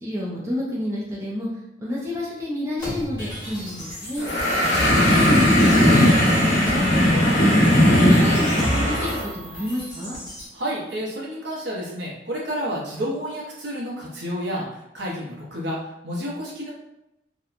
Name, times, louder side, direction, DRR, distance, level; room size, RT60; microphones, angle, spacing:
voice 1, 0.0-1.5 1.8-4.3 4.9-10.2, left 1 dB, 15° right, -7 dB, 0.4 m, -29 dB
sound 1, 2.8-10.5, equal, 20° left, 1.1 m, -33 dB
sound 2, 4.2-9.2, left 1 dB, 60° left, 0.9 m, -17 dB
voice 2, 10.5-16.7, equal, 60° right, -5 dB, 0.8 m, -30 dB
2.8 x 2.1 x 2.4 m, 0.88 s
head